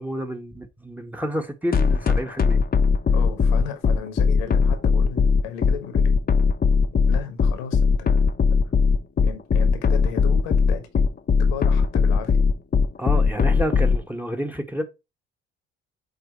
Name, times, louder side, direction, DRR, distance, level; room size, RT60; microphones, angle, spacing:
voice 1, 0.0-2.6 13.0-14.8, equal, 5° right, 1.3 m, -29 dB
sound 1, 1.7-14.0, left 5 dB, 30° left, 0.9 m, -18 dB
voice 2, 3.1-6.1 7.1-8.3 9.2-11.0 11.4-12.4, left 8 dB, 80° left, 1.4 m, -35 dB
8.0 x 2.8 x 4.3 m
hypercardioid pair, 55°, 29 cm